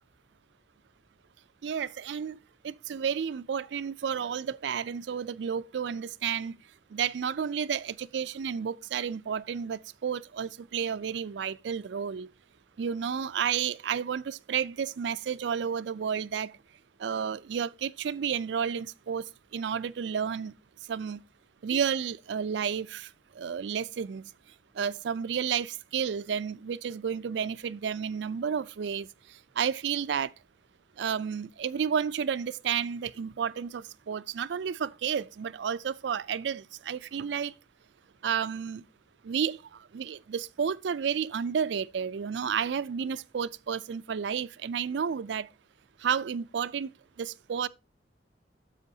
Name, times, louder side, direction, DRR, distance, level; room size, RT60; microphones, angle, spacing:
voice 1, 1.6-2.4 2.6-6.6 6.9-12.3 12.8-16.5 17.0-19.2 19.5-20.5 20.9-21.2 21.6-23.1 23.4-24.3 24.8-29.1 29.6-30.3 31.0-37.5 38.2-38.8 39.2-39.6 39.9-45.5 46.0-46.9 47.2-47.7, right 7 dB, 75° right, 0.4 m, -31 dB
9.9 x 7.5 x 2.7 m
head